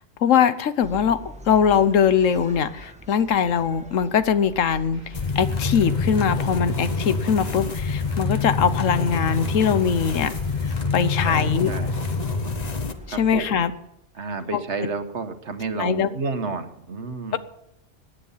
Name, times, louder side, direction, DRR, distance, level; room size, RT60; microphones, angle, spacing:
voice 1, 0.2-5.0 5.3-10.3 10.6-11.7 13.1-13.7 14.5-14.6 15.8-16.1, left 7 dB, 85° left, 13 dB, 1.2 m, -21 dB
sound 1, 0.8-13.7, right 1 dB, 5° right, 1.4 m, -44 dB
sound 2, 4.6-12.2, equal, 50° left, 7.9 m, -52 dB
sound 3, 5.1-12.9, left 4 dB, 35° left, 1.0 m, -26 dB
voice 2, 11.2-12.0 13.1-13.6 14.2-17.4, right 4 dB, 65° right, 8 dB, 1.5 m, -30 dB
17.0 x 10.0 x 5.7 m, 0.79 s
omnidirectional pair, 1.3 m